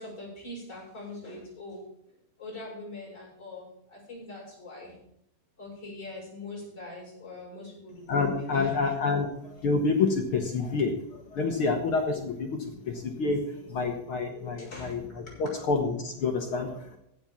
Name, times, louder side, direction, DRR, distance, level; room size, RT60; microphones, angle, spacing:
voice 1, 0.0-1.8 2.4-5.0 5.6-8.7 14.6-15.0 15.2-15.3, left 2 dB, 20° left, -6 dB, 6.3 m, -42 dB
voice 2, 8.1-9.3 9.6-13.4 13.7-17.0, left 4 dB, 70° left, 3 dB, 1.2 m, -28 dB
15.5 x 5.3 x 7.2 m, 0.77 s
omnidirectional pair, 4.1 m